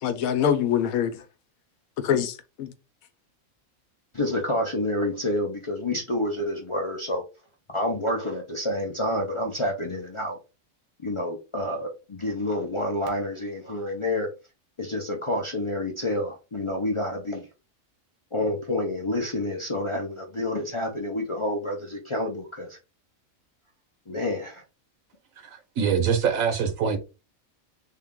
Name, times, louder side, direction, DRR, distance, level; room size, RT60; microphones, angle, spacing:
voice 1, 0.0-1.2 2.0-2.7, left 8 dB, 90° left, 1.1 m, -24 dB
voice 2, 4.1-7.2 7.7-10.4 11.0-14.3 14.8-17.5 18.3-22.8 24.1-24.6, left 1 dB, 45° left, 0.4 m, -28 dB
voice 3, 25.4-27.0, right 7 dB, 80° right, 1.3 m, -24 dB
3.7 x 2.3 x 3.6 m
omnidirectional pair, 1.4 m